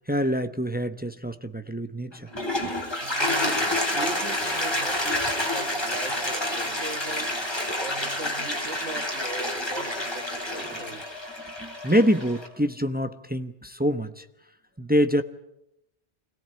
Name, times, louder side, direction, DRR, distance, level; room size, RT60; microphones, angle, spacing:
voice 1, 0.1-2.3 11.6-14.2 14.8-15.2, equal, 10° right, 0.8 m, -25 dB
Toilet flush, 2.1-12.5, left 1 dB, 20° left, 3.5 m, -28 dB
voice 2, 3.0-7.4 7.7-11.0, right 3 dB, 90° right, 2.2 m, -39 dB
25.5 x 17.5 x 8.8 m
omnidirectional pair, 1.2 m